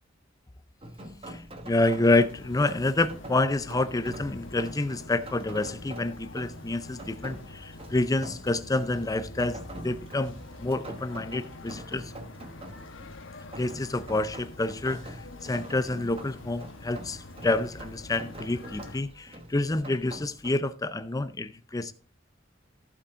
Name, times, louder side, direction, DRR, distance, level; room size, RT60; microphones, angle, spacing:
Rain, 0.8-20.6, right 1 dB, 30° right, 1.3 m, -45 dB
voice 1, 1.3-12.1 13.6-21.9, left 2 dB, 20° left, 0.5 m, -28 dB
sound 1, 2.1-19.0, left 2 dB, 85° left, 1.1 m, -45 dB
14.5 x 5.6 x 3.6 m
head